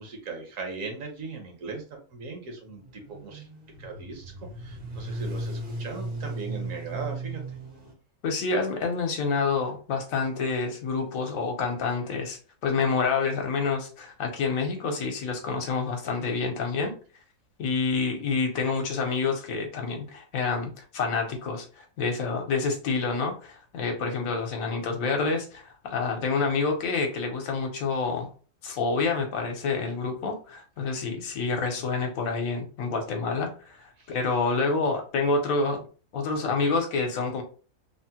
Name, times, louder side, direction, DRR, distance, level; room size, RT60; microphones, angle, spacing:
voice 1, 0.0-3.5 3.8-7.4 30.9-31.3 31.7-31.8 34.0-34.2, right 4 dB, 65° right, 3 dB, 1.2 m, -39 dB
sound 1, 2.8-7.9, right 2 dB, 45° right, 0.7 m, -36 dB
voice 2, 8.2-16.9 17.6-28.3 28.6-35.9 36.1-37.4, left 4 dB, 70° left, 4 dB, 1.1 m, -28 dB
3.4 x 2.1 x 2.8 m, 0.37 s
omnidirectional pair, 1.5 m